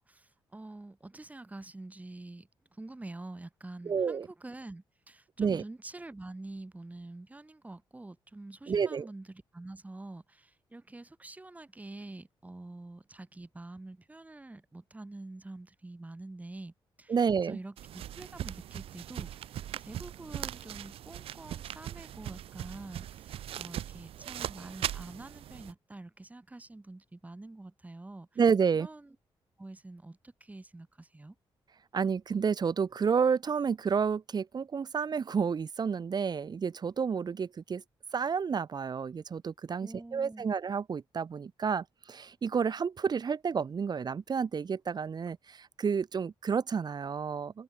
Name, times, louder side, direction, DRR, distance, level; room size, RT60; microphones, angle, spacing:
voice 1, 0.0-17.1 17.4-28.3 28.8-29.1 29.6-31.3 39.8-40.5, right 2 dB, 15° right, 2.6 m, -47 dB
voice 2, 3.9-4.3 5.4-5.6 8.7-9.1 17.1-17.6 28.4-28.9 31.9-37.8 38.1-47.6, right 6 dB, 45° right, 2.4 m, -30 dB
sound 1, 17.8-25.7, right 11 dB, 90° right, 2.6 m, -40 dB
cardioid pair, 95°, 9 cm